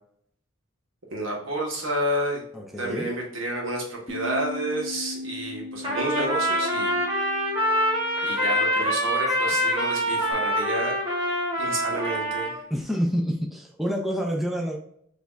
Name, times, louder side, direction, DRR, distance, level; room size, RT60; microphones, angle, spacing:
voice 1, 1.1-2.4 2.8-7.0 8.2-11.0 11.6-12.6, right 1 dB, 70° right, -2 dB, 1.6 m, -30 dB
voice 2, 2.5-3.1 12.7-14.8, equal, ahead, -1 dB, 0.5 m, -27 dB
Bass guitar, 4.1-10.3, left 2 dB, 30° left, 1.0 m, -40 dB
Trumpet, 5.8-12.6, equal, 25° right, 1.3 m, -25 dB
5.2 x 3.3 x 2.5 m, 0.68 s
head